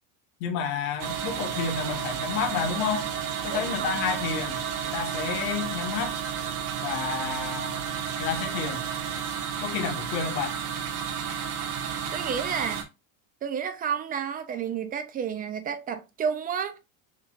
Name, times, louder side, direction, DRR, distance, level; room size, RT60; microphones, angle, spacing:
voice 1, 0.4-3.0 3.4-4.6 4.9-6.1 6.8-7.8 8.2-8.9 9.6-10.6, left 6 dB, 70° left, 1.3 m, -30 dB
sound 1, 1.0-12.8, right 8 dB, 90° right, 1.5 m, -32 dB
voice 2, 3.5-3.9 12.1-12.8 13.4-16.8, right 7 dB, 20° right, 0.5 m, -31 dB
6.5 x 3.0 x 2.4 m
cardioid pair, 150°, 44 cm